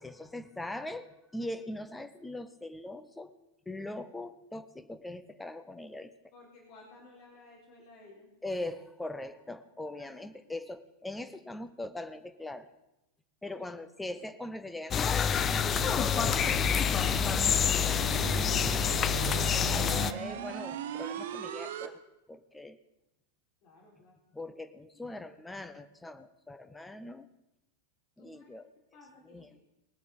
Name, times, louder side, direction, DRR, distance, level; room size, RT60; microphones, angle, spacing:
voice 1, 0.0-3.3 3.7-6.1 8.4-12.7 13.4-16.7 17.7-19.2 19.7-22.0 22.3-22.8 24.3-27.3 28.2-28.7 29.2-29.5, left 1 dB, 5° left, 11 dB, 0.9 m, -41 dB
voice 2, 6.3-8.3 10.0-10.4 13.4-13.6 14.1-14.2 23.6-24.1 25.0-25.1 28.2-28.5 28.9-29.6, left 2 dB, 45° left, -1 dB, 3.7 m, -56 dB
sound 1, 14.9-20.1, left 8 dB, 25° left, 0.5 m, -27 dB
sound 2, 15.4-21.9, right 8 dB, 60° right, 0.9 m, -37 dB
20.5 x 7.9 x 5.3 m, 0.93 s
figure-of-eight pair, 90°, 0 cm